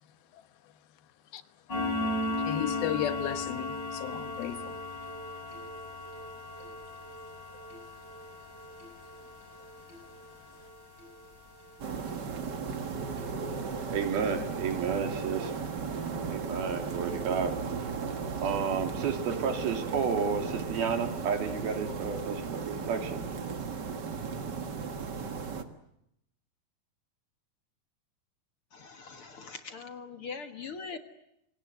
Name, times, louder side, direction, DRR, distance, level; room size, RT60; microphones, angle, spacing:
sound 1, 1.7-16.8 17.2-17.4 17.8-17.9 18.4-18.5 18.9-19.0 19.3-19.5, left 2 dB, 25° left, 8.3 m, -38 dB
voice 1, 2.4-4.9, left 12 dB, 90° left, 3.1 m, -34 dB
sound 2, 11.8-25.6, right 5 dB, 45° right, 1.4 m, -36 dB
voice 2, 13.9-15.5 16.3-17.6 18.4-23.3, right 6 dB, 85° right, 4.8 m, -31 dB
voice 3, 28.7-31.0, left 5 dB, 50° left, 1.9 m, -42 dB
27.5 x 25.0 x 8.0 m
omnidirectional pair, 4.2 m